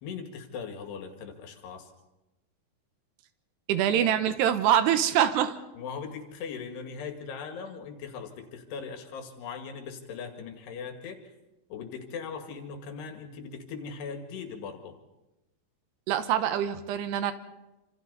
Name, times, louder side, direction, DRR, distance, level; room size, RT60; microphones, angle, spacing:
voice 1, 0.0-1.9 5.8-11.2 11.7-14.9, left 6 dB, 80° left, 5 dB, 4.1 m, -39 dB
voice 2, 3.7-5.6 16.1-17.3, right 10 dB, 90° right, 10 dB, 3.2 m, -24 dB
27.5 x 26.5 x 4.1 m, 0.97 s
omnidirectional pair, 4.7 m